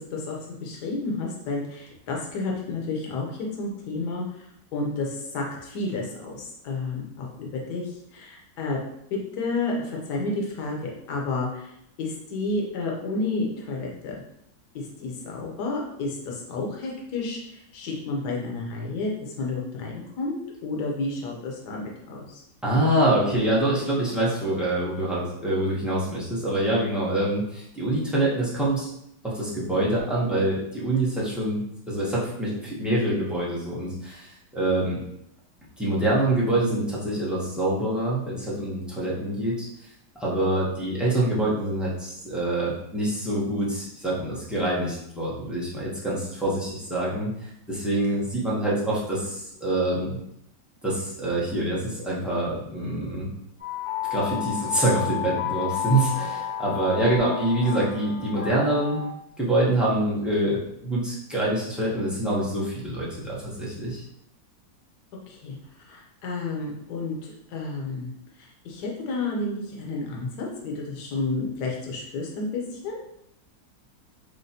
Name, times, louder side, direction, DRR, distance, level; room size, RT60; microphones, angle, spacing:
voice 1, 0.6-4.2 4.7-8.8 9.1-11.7 12.0-14.2 14.7-22.4 65.3-65.6 65.9-68.1 68.4-73.1, left 3 dB, 65° left, -1 dB, 1.4 m, -31 dB
voice 2, 22.6-28.9 29.2-35.0 35.8-39.7 40.1-50.2 50.8-53.3 54.1-59.0 59.4-64.0, right 1 dB, ahead, -7 dB, 0.5 m, -25 dB
sound 1, 53.6-59.1, left 11 dB, 90° left, 2.0 m, -31 dB
6.4 x 2.2 x 2.8 m, 0.76 s
omnidirectional pair, 1.9 m